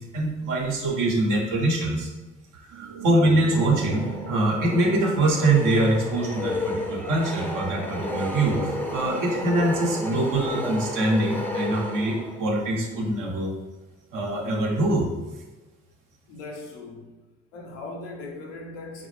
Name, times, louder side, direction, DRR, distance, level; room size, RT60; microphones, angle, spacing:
voice 1, 0.1-2.1 2.5-13.5 14.1-15.1, right 2 dB, 65° right, -1 dB, 0.8 m, -24 dB
sound 1, 2.7-13.0, right 6 dB, 45° right, 0.5 m, -42 dB
sound 2, 3.5-12.6, left 1 dB, 5° left, 0.5 m, -32 dB
voice 2, 16.3-17.1 17.5-19.1, left 2 dB, 90° left, 0 dB, 0.5 m, -39 dB
4.0 x 2.1 x 3.1 m, 1.2 s
hypercardioid pair, 40°, 35 cm